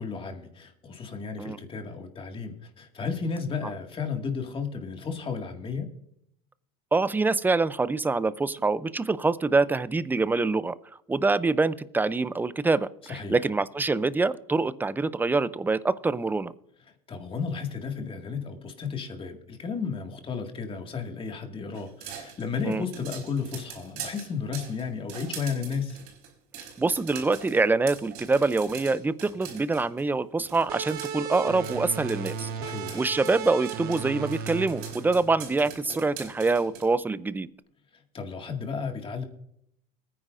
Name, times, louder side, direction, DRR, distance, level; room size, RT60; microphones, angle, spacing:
voice 1, 0.0-5.9 13.1-13.4 17.1-26.0 32.5-33.0 37.9-39.2, left 5 dB, 30° left, 4 dB, 2.1 m, -33 dB
voice 2, 6.9-10.7 11.1-16.5 22.6-22.8 26.8-32.5 32.9-37.5, right 3 dB, 10° right, 16 dB, 0.5 m, -25 dB
sound 1, 21.7-30.1 30.4-36.8, right 8 dB, 75° right, 3.9 m, -43 dB
sound 2, 30.7-36.0, right 7 dB, 55° right, 1.1 m, -36 dB
21.5 x 9.8 x 2.6 m, 0.75 s
supercardioid pair, 115°, 19 cm